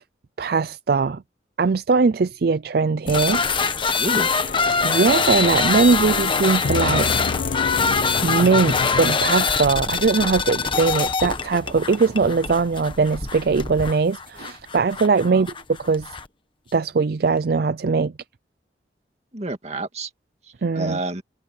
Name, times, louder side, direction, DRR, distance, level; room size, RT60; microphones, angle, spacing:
voice 1, 0.4-1.2 1.6-3.4 4.8-7.1 8.2-15.5 15.8-16.1 16.7-18.1 20.6-21.0, right 4 dB, 55° right, 0.4 m, -20 dB
sound 1, 3.1-16.3, left 5 dB, 30° left, 1.2 m, -24 dB
voice 2, 4.0-4.3 15.2-15.5 19.3-20.1 20.4-21.2, right 2 dB, 40° right, 2.1 m, -29 dB
sound 2, 4.2-9.8, left 5 dB, 55° left, 0.3 m, -30 dB
head